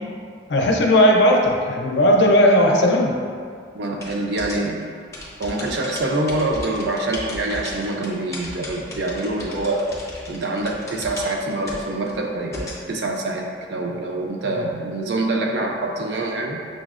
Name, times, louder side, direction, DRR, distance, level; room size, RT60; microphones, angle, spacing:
voice 1, 0.5-3.1 14.5-14.6, equal, 75° left, 0 dB, 0.5 m, -16 dB
voice 2, 3.7-4.8 5.4-9.8 10.2-16.6, right 2 dB, 70° right, 0 dB, 0.5 m, -25 dB
sound 1, 4.0-12.8, left 1 dB, 15° left, 0.6 m, -36 dB
6.1 x 2.0 x 2.4 m, 2.1 s
head